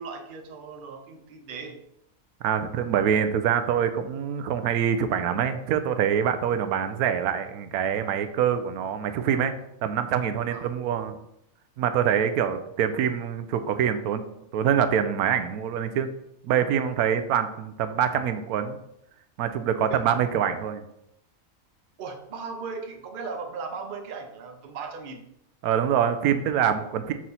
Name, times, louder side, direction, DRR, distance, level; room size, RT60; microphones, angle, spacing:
voice 1, 0.0-1.8 10.5-10.7 19.9-20.0 22.0-25.2, right 4 dB, 45° right, 5 dB, 0.8 m, -37 dB
voice 2, 2.4-9.5 9.8-11.2 11.8-14.2 14.5-16.1 16.4-18.8 19.4-20.8 25.6-27.1, right 8 dB, 85° right, 9 dB, 1.1 m, -25 dB
6.1 x 4.3 x 4.0 m, 0.79 s
omnidirectional pair, 1.5 m